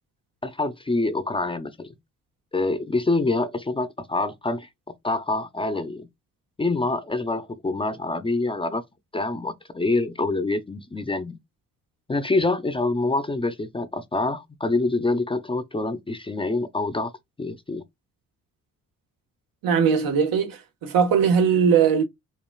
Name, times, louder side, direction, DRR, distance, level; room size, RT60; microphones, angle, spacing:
voice 1, 0.4-2.0 2.5-4.7 5.0-6.1 6.6-8.8 9.1-11.4 12.1-17.1 17.4-17.8, left 2 dB, 15° left, 0.5 m, -26 dB
voice 2, 19.6-22.0, right 7 dB, 80° right, 1.2 m, -20 dB
5.2 x 2.3 x 2.3 m
cardioid pair, 105°, 34 cm